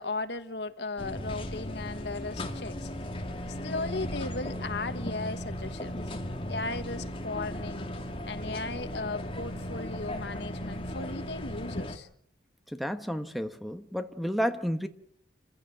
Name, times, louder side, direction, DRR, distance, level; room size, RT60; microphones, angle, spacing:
voice 1, 0.0-2.9 3.5-6.0 6.5-7.9 8.3-12.1, left 3 dB, 70° left, 1.5 m, -36 dB
sound 1, 1.0-12.0, left 1 dB, 30° left, 2.3 m, -36 dB
voice 2, 12.7-14.9, equal, ahead, 1.1 m, -31 dB
27.5 x 15.5 x 7.7 m
head